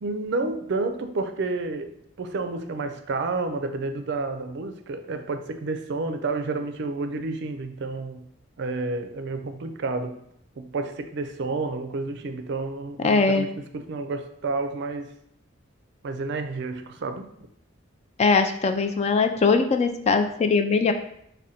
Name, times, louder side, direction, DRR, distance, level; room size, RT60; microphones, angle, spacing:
voice 1, 0.0-8.2 8.6-10.2 10.6-15.1 16.0-17.3, right 3 dB, 60° right, 8 dB, 0.4 m, -30 dB
voice 2, 13.0-13.5 18.2-20.9, left 4 dB, 35° left, 7 dB, 0.3 m, -21 dB
4.9 x 2.2 x 4.1 m, 0.73 s
head